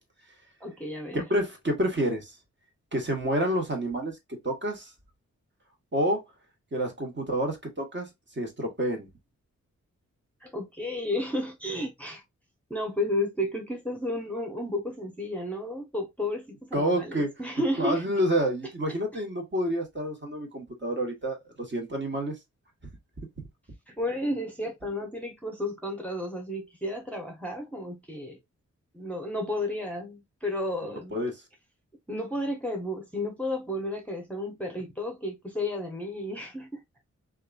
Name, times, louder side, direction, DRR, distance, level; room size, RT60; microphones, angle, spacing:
voice 1, 0.6-1.2 10.4-12.2 12.7-18.0 23.9-28.4 28.9-31.2 32.1-36.8, left 1 dB, 5° left, 0.8 m, -32 dB
voice 2, 1.1-2.3 2.9-4.2 4.4-4.9 5.9-6.2 6.7-8.1 8.4-9.1 16.7-17.3 17.8-22.4 30.8-31.3, equal, 35° right, 1.2 m, -28 dB
2.9 x 2.4 x 2.3 m
cardioid pair, 60°, 30 cm